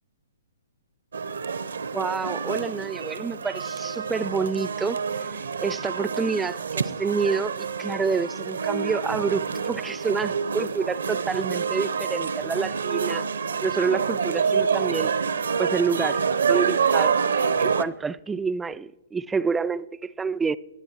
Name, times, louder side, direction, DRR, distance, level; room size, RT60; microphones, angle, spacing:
sound 1, 1.1-17.8, right 6 dB, 65° right, 0.7 m, -27 dB
voice 1, 1.9-5.0 5.6-13.3 13.6-15.1 15.6-16.2 16.5-20.6, right 5 dB, 10° right, 0.3 m, -28 dB
24.0 x 10.0 x 2.9 m
figure-of-eight pair, 120°, 0 cm